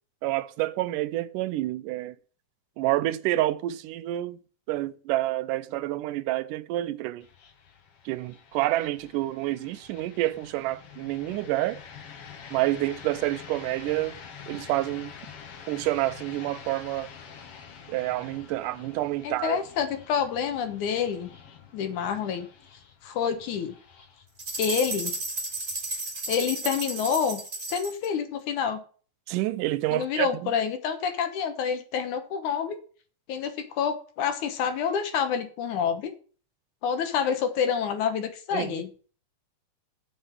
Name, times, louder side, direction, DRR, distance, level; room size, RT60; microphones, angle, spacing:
voice 1, 0.2-2.2 2.8-4.4 4.7-7.3 8.1-11.8 12.5-14.2 14.5-15.1 15.7-17.1 17.9-19.6 29.3-30.5 38.5-38.8, right 16 dB, 85° right, 2.2 m, -28 dB
sound 1, 7.2-26.2, left 6 dB, 55° left, 2.0 m, -47 dB
voice 2, 19.2-21.3 21.7-22.5 23.0-23.7 24.6-25.1 26.3-27.4 27.7-28.8 29.9-32.8 33.3-36.1 36.8-38.9, left 7 dB, 70° left, 2.6 m, -28 dB
sound 2, 24.4-28.1, right 2 dB, 25° right, 2.4 m, -33 dB
7.6 x 6.7 x 7.6 m
omnidirectional pair, 3.6 m